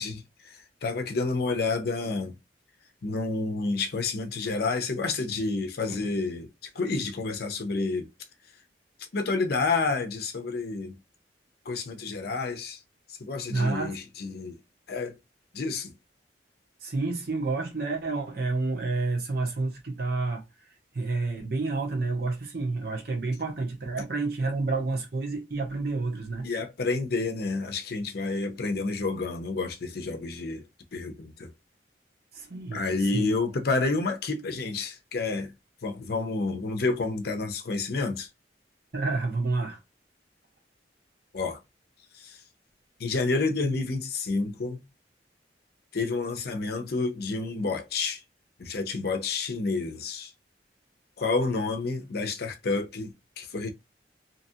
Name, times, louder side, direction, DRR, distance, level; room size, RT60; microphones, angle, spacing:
voice 1, 0.0-2.4 3.0-8.1 9.0-10.9 11.7-12.8 13.1-14.6 14.9-15.2 15.5-15.9 26.4-30.7 30.9-31.5 32.7-35.5 35.8-38.3 41.3-41.6 42.1-42.4 43.0-44.8 45.9-48.2 48.6-50.3 51.2-53.7, left 3 dB, 60° left, 0.6 m, -29 dB
voice 2, 13.5-14.0 16.8-20.4 20.9-26.5 32.3-32.9 33.1-33.3 38.9-39.8, right 3 dB, 60° right, 1.0 m, -29 dB
2.8 x 2.3 x 2.7 m
head